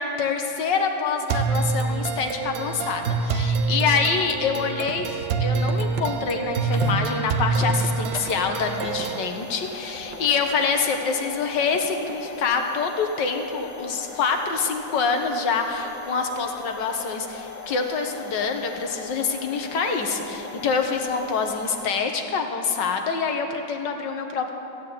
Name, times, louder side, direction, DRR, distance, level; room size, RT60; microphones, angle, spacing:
voice 1, 0.0-24.5, left 5 dB, 75° left, 4 dB, 1.8 m, -26 dB
sound 1, 1.3-9.3, right 4 dB, 60° right, 1.0 m, -26 dB
sound 2, 4.7-10.8 11.2-12.6, right 4 dB, 80° right, 1.7 m, -41 dB
sound 3, 5.7-21.9, left 4 dB, 40° left, 0.5 m, -39 dB
15.5 x 9.4 x 8.8 m, 2.7 s
omnidirectional pair, 2.0 m